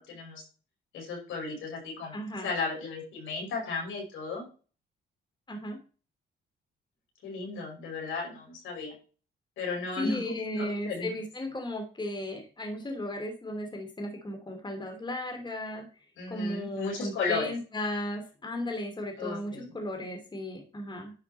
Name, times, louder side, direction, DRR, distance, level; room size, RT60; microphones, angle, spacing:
voice 1, 0.1-0.4 0.9-4.5 7.2-8.9 9.6-11.1 16.2-17.5 19.2-19.7, left 4 dB, 80° left, 0 dB, 5.6 m, -35 dB
voice 2, 2.1-2.5 5.5-5.8 10.0-15.9 16.3-21.1, left 1 dB, 20° left, 4 dB, 2.7 m, -35 dB
10.5 x 5.8 x 4.2 m, 0.36 s
cardioid pair, 90°, 20 cm